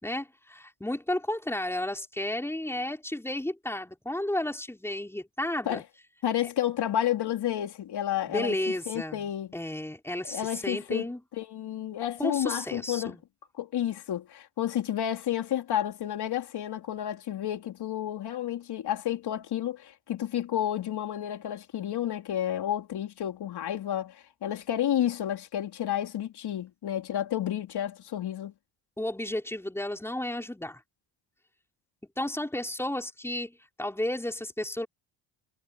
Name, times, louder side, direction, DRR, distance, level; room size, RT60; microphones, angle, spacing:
voice 1, 0.0-5.8 8.3-9.3 9.5-11.2 12.2-13.2 29.0-30.8 32.2-34.9, left 1 dB, 5° left, 4.8 m, -32 dB
voice 2, 6.2-8.6 8.9-9.5 10.3-11.1 11.4-13.2 13.6-28.5, left 11 dB, 65° left, 3.7 m, -31 dB
cardioid pair, 90°, 43 cm